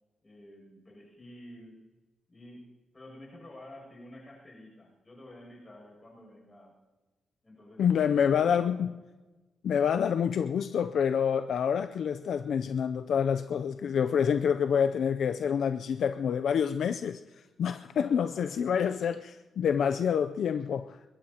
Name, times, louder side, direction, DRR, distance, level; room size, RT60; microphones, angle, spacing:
voice 1, 0.2-1.8 2.3-6.8 7.4-8.9 17.8-18.6, left 1 dB, 20° left, -2 dB, 7.1 m, -50 dB
voice 2, 7.8-8.9 9.6-17.2 17.6-21.0, left 7 dB, 60° left, 9 dB, 0.5 m, -27 dB
22.5 x 21.5 x 2.9 m, 1.2 s
wide cardioid pair, 165°, 0 cm